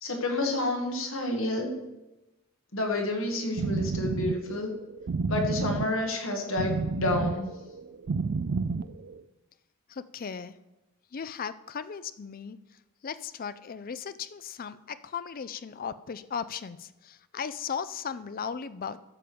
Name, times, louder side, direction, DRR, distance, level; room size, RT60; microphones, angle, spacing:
voice 1, 0.0-1.7 2.7-4.7 5.3-7.5, left 2 dB, 60° left, 2 dB, 1.8 m, -29 dB
sound 1, 3.3-9.2, right 4 dB, 50° right, 0.4 m, -31 dB
voice 2, 9.9-10.6 11.1-12.6 13.0-19.0, left 6 dB, 40° left, 14 dB, 0.4 m, -37 dB
13.0 x 5.0 x 6.9 m, 0.99 s
head